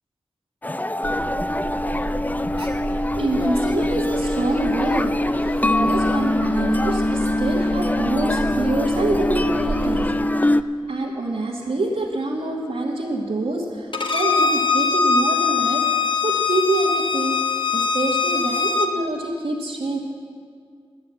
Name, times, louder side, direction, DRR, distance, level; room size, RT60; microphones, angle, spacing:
sound 1, 0.6-10.6, left 1 dB, 15° left, 0.3 m, -23 dB
Alarm, 1.0-10.1, right 2 dB, 60° right, 1.7 m, -33 dB
voice 1, 3.1-10.1 10.4-10.6 10.9-20.0, right 2 dB, 80° right, -3 dB, 1.3 m, -26 dB
Bowed string instrument, 13.9-18.9, left 5 dB, 55° left, 1.0 m, -21 dB
11.0 x 9.6 x 7.3 m, 2.2 s
wide cardioid pair, 70°, 10 cm